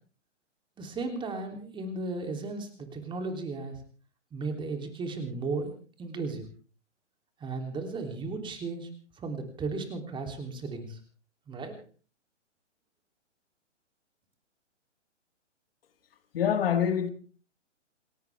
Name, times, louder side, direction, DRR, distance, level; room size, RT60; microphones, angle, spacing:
voice 1, 0.8-3.8 4.3-6.5 7.4-8.9 9.2-11.0 11.5-11.8, right 3 dB, 15° right, 3.2 m, -35 dB
voice 2, 16.3-17.1, left 8 dB, 50° left, 2.0 m, -25 dB
28.5 x 13.0 x 3.5 m
figure-of-eight pair, 125°, 36 cm